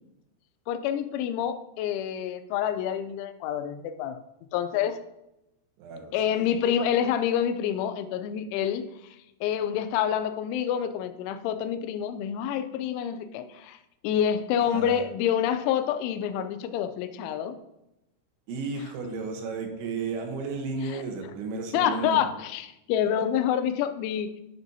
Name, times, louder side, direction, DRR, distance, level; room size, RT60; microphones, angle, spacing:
voice 1, 0.7-4.2 4.5-5.0 6.1-8.9 9.4-13.8 14.0-17.6 20.8-21.0 21.7-24.3, left 9 dB, 90° left, 10 dB, 3.0 m, -27 dB
voice 2, 5.8-6.5 14.7-15.0 18.5-22.3, right 4 dB, 80° right, 3 dB, 3.3 m, -33 dB
9.4 x 6.0 x 2.7 m, 0.90 s
omnidirectional pair, 5.4 m